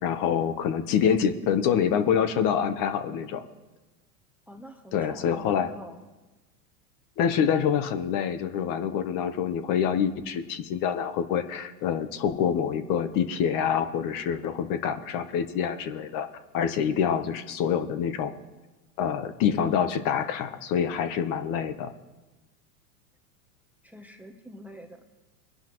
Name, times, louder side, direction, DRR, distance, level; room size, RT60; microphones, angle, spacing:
voice 1, 0.0-3.4 4.9-5.7 7.2-16.3 16.5-18.3 19.0-21.9, left 8 dB, 45° left, 10 dB, 1.1 m, -26 dB
voice 2, 4.5-6.0 23.8-25.2, equal, 5° right, 5 dB, 0.9 m, -46 dB
22.0 x 11.0 x 3.1 m, 1.1 s
hypercardioid pair, 115°, 47 cm